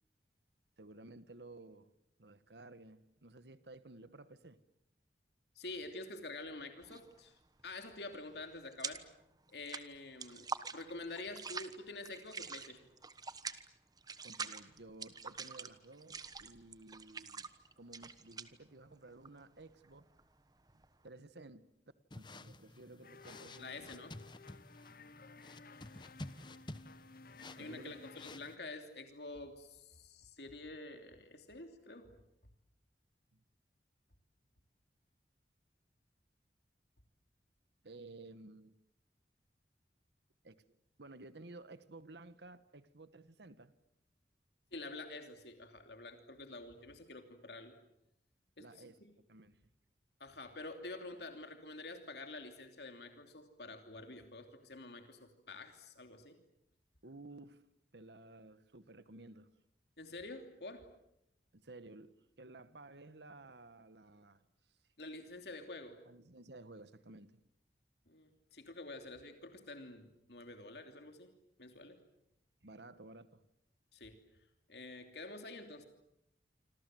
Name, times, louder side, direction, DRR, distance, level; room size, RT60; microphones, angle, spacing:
voice 1, 0.8-1.9 2.2-4.6 14.2-17.5 17.8-20.1 21.0-21.7 22.1-24.0 27.6-28.0 33.3-33.4 37.8-38.7 40.4-40.6 41.0-43.7 48.6-49.0 49.3-49.6 57.0-57.6 57.9-59.5 61.5-64.4 66.1-67.4 72.6-73.4, right 2 dB, 75° right, 1.3 m, -54 dB
voice 2, 5.5-9.1 9.5-12.9 23.6-24.1 27.6-32.1 44.7-47.8 48.6-49.1 50.2-56.4 60.0-60.8 65.0-66.0 68.1-71.3 71.6-72.0 73.9-74.2 74.7-75.9, left 2 dB, 70° left, 3.0 m, -48 dB
sound 1, 6.8-7.2 7.5-9.2 9.5-21.0, right 5 dB, 20° right, 1.2 m, -45 dB
sound 2, 22.1-28.6, left 2 dB, 25° left, 1.0 m, -52 dB
sound 3, 23.0-28.4, left 4 dB, 55° left, 1.0 m, -57 dB
26.5 x 26.5 x 7.8 m
head